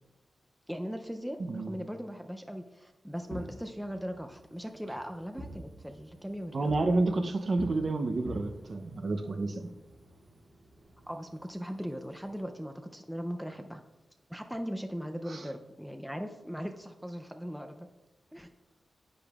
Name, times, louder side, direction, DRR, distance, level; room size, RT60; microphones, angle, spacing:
voice 1, 0.7-6.7 11.1-13.8 14.3-17.9 18.3-18.5, equal, ahead, 0.4 m, -39 dB
Fireworks, 3.1-12.4, right 1 dB, 85° right, 3.0 m, -48 dB
voice 2, 6.5-9.7 15.3-15.5, right 2 dB, 45° right, 0.6 m, -30 dB
9.9 x 8.9 x 2.4 m
wide cardioid pair, 145°, 0 cm